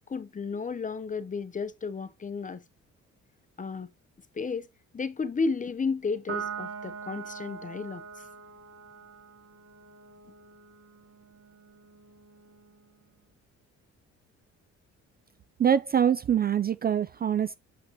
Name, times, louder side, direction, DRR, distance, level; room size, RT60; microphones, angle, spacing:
voice 1, 0.1-2.6 3.6-3.9 4.3-4.7 4.9-8.0, left 4 dB, 25° left, 0.8 m, -32 dB
Piano, 6.3-13.0, right 6 dB, 50° right, 3.0 m, -42 dB
voice 2, 15.6-17.6, right 8 dB, 35° right, 0.4 m, -24 dB
6.9 x 5.8 x 3.0 m
cardioid pair, 90°, 30 cm